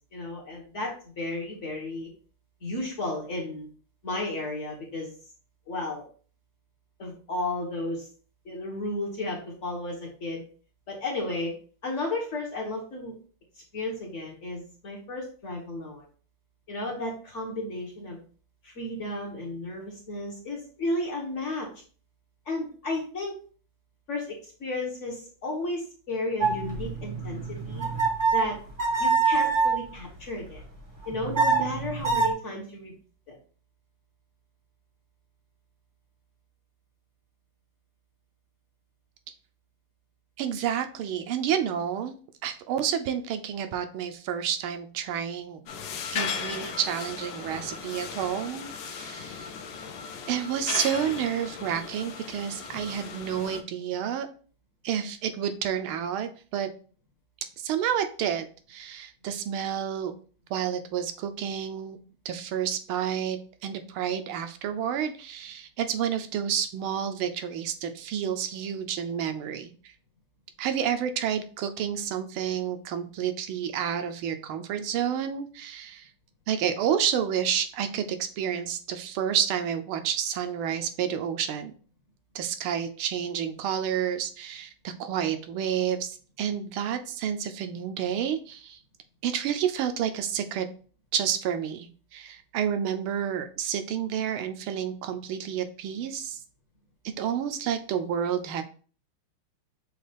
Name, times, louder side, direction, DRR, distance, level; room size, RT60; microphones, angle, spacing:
voice 1, 0.1-2.1 2.6-3.7 4.0-5.1 5.7-6.0 7.0-8.1 8.4-10.4 10.9-11.5 11.8-13.1 13.7-16.0 16.7-18.2 18.6-21.7 22.5-23.3 24.1-27.9 28.3-28.6 29.0-30.6 31.1-32.9 33.3-33.4, left 2 dB, 45° left, -1 dB, 1.0 m, -33 dB
sound 1, 26.4-29.8 31.0-32.3, right 4 dB, 15° right, 0.6 m, -25 dB
voice 2, 40.4-42.1 42.4-45.6 46.1-49.5 50.3-54.3 54.8-56.7 57.6-60.1 60.5-62.0 62.2-69.7 70.6-76.1 76.5-81.7 82.3-88.8 89.2-90.7 91.1-96.4 97.2-98.6, right 9 dB, 80° right, 8 dB, 1.4 m, -30 dB
sound 2, 45.7-53.6, left 6 dB, 70° left, 1.1 m, -36 dB
6.5 x 2.3 x 3.3 m, 0.40 s
omnidirectional pair, 2.4 m